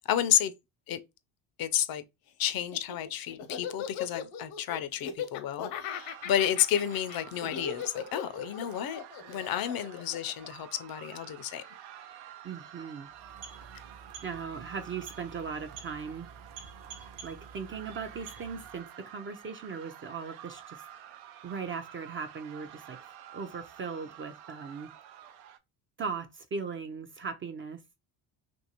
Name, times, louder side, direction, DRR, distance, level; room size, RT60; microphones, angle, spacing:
voice 1, 0.1-0.5 0.9-1.0 1.6-2.0 2.4-9.0 9.3-11.6, left 10 dB, 50° left, 0.5 m, -31 dB
Laughter, 2.6-11.0, left 7 dB, 75° left, 0.8 m, -38 dB
sound 1, 5.9-25.6, right 10 dB, 85° right, 0.6 m, -50 dB
voice 2, 12.4-13.1 14.2-16.3 17.2-20.8 21.4-23.0 23.3-24.9 26.0-27.8, right 5 dB, 30° right, 0.4 m, -38 dB
sound 2, 13.1-18.9, right 5 dB, 45° right, 0.7 m, -49 dB
2.8 x 2.6 x 2.8 m
supercardioid pair, 85°, 48 cm